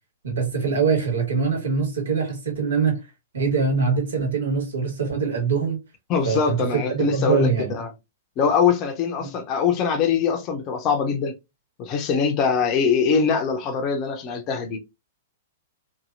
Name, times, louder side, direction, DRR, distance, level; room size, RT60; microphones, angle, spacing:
voice 1, 0.2-3.0 3.3-5.8 6.2-7.7 9.2-9.3, right 5 dB, 65° right, 1.6 m, -23 dB
voice 2, 6.1-7.9 8.4-11.4 11.8-14.8, left 6 dB, 35° left, 0.6 m, -22 dB
2.8 x 2.6 x 2.5 m
figure-of-eight pair, 105°, 0 cm